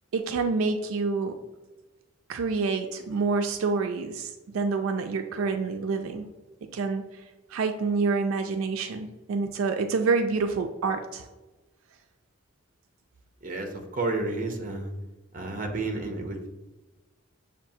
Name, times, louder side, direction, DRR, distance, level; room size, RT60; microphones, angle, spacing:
voice 1, 0.1-1.4 2.3-6.3 6.7-7.2 7.5-11.3, right 4 dB, 80° right, 7 dB, 0.3 m, -27 dB
voice 2, 13.4-14.9 15.3-16.5, right 2 dB, 40° right, 2 dB, 0.6 m, -31 dB
6.9 x 2.4 x 2.7 m, 1.1 s
head